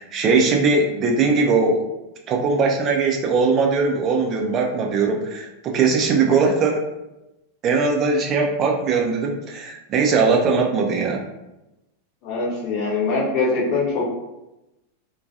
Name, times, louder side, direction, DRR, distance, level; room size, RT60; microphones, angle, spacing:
voice 1, 0.0-1.8 2.3-6.8 7.6-11.2, right 4 dB, 30° right, 1 dB, 0.4 m, -20 dB
voice 2, 12.2-14.1, left 3 dB, 40° left, -6 dB, 0.8 m, -23 dB
2.3 x 2.2 x 2.6 m, 0.96 s
figure-of-eight pair, 90°, 0 cm